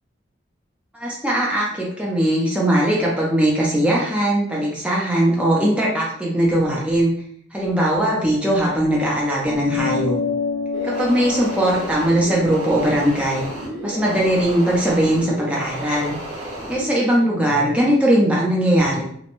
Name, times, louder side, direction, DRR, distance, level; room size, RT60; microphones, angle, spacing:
voice 1, 0.9-7.1 7.5-10.2 10.8-13.5 13.8-16.2 16.7-19.0, right 1 dB, 5° right, -4 dB, 0.4 m, -20 dB
sound 1, 9.4-14.2, left 5 dB, 60° left, 1.0 m, -29 dB
sound 2, 10.7-16.9, right 1 dB, 75° right, 1.1 m, -33 dB
2.9 x 2.1 x 2.5 m, 0.66 s
head